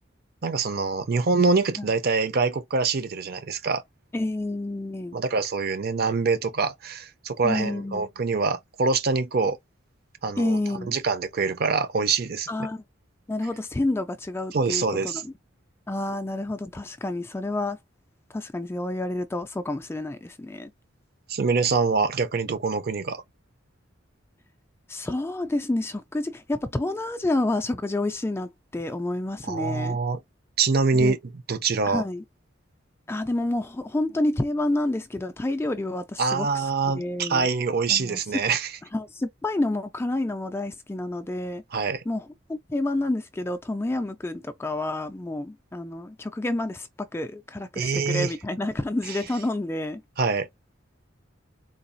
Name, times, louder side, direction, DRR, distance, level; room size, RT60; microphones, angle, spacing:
voice 1, 0.4-3.8 5.1-9.6 10.2-10.6 10.9-12.5 14.5-15.2 21.3-23.2 29.4-30.2 30.6-31.2 31.5-32.0 36.2-38.7 41.7-42.0 47.7-48.3 49.1-49.2 50.2-50.5, right 4 dB, 50° right, 0.6 m, -25 dB
voice 2, 4.1-5.2 7.4-8.1 10.4-10.9 12.5-12.8 13.3-15.3 15.9-17.8 18.3-20.7 24.9-30.0 30.9-31.1 31.9-32.2 33.1-36.5 36.8-37.5 37.9-38.4 38.9-41.6 42.1-50.0, left 2 dB, 10° left, 0.3 m, -29 dB
3.9 x 2.3 x 2.6 m
head